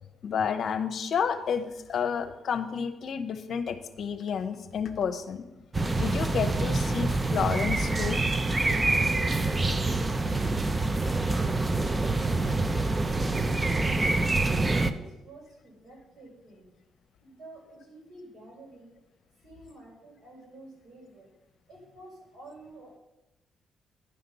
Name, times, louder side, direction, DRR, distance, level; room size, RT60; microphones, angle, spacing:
voice 1, 0.2-5.5 6.0-8.2, left 7 dB, 60° left, 11 dB, 0.8 m, -30 dB
sound 1, 5.7-14.9, right 2 dB, 20° right, 0.6 m, -26 dB
voice 2, 14.6-16.7 17.2-18.9 19.4-21.3 21.7-23.0, right 2 dB, 55° right, -2 dB, 4.7 m, -50 dB
10.5 x 5.8 x 7.0 m, 0.96 s
cardioid pair, 90°, 0 cm